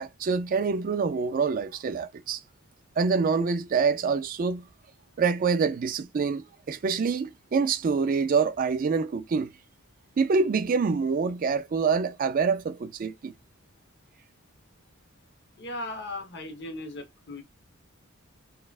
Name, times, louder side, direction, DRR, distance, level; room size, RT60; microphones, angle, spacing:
voice 1, 0.0-2.4 3.0-4.6 5.2-9.5 10.2-13.3, right 5 dB, 40° right, 0.3 m, -26 dB
voice 2, 15.6-17.4, left 1 dB, 55° left, 1.0 m, -37 dB
4.1 x 2.3 x 2.4 m
head